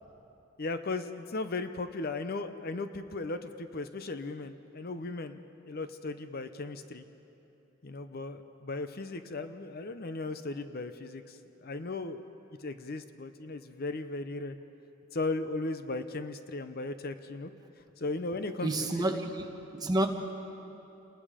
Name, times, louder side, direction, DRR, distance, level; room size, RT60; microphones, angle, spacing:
voice 1, 0.6-7.0 7.8-12.2 12.6-14.6 15.1-17.5 18.0-19.1, left 3 dB, 45° left, 0.7 m, -37 dB
voice 2, 18.6-20.1, right 1 dB, 20° right, 1.3 m, -30 dB
29.0 x 20.0 x 5.0 m
head